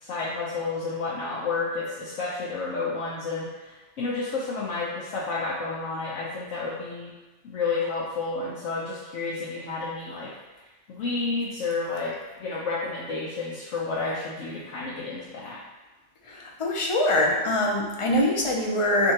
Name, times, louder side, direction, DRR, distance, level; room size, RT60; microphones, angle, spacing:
voice 1, 0.0-7.1 7.4-10.3 10.9-15.6, left 3 dB, 90° left, -6 dB, 1.0 m, -31 dB
voice 2, 16.3-19.1, left 1 dB, 45° left, -1 dB, 0.4 m, -23 dB
6.2 x 2.7 x 2.8 m, 1.2 s
omnidirectional pair, 1.3 m